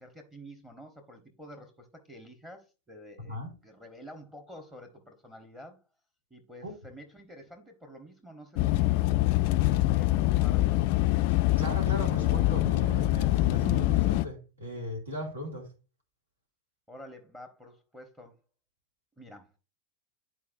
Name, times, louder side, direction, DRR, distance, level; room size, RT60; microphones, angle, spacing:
voice 1, 0.0-5.8 6.3-9.1 9.6-11.0 16.9-18.3 19.2-19.5, equal, 10° right, 1.2 m, -49 dB
sound 1, 8.6-14.3, left 16 dB, 45° left, 0.3 m, -25 dB
voice 2, 11.6-15.7, equal, 70° right, 2.5 m, -37 dB
11.0 x 4.5 x 2.6 m
figure-of-eight pair, 90°, 0 cm